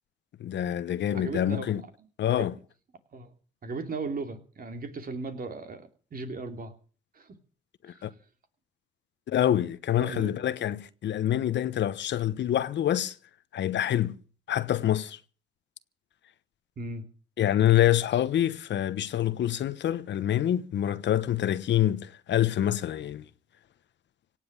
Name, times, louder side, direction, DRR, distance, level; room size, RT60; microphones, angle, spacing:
voice 1, 0.4-1.8 2.2-2.5 8.0-8.1 9.3-13.1 13.5-14.2 14.5-15.2 17.4-23.2, left 11 dB, 65° left, 1.1 m, -26 dB
voice 2, 1.1-2.5 3.1-3.3 3.6-6.7 7.1-7.3 7.9-8.0 10.0-10.3 16.8-17.0, right 3 dB, 45° right, 2.8 m, -37 dB
17.5 x 7.8 x 8.9 m
cardioid pair, 90°, 20 cm